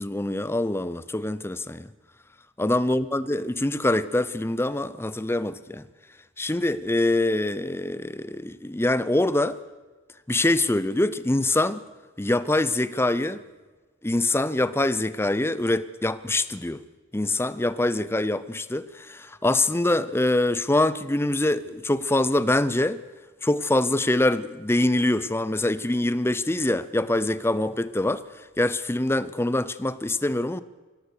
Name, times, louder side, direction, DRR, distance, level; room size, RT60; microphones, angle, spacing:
voice 1, 0.0-1.9 2.6-5.8 6.4-9.6 10.3-11.8 12.2-13.4 14.0-16.8 17.1-23.0 23.4-28.2 28.6-30.6, left 1 dB, 10° left, 0.6 m, -24 dB
24.5 x 16.5 x 6.7 m
head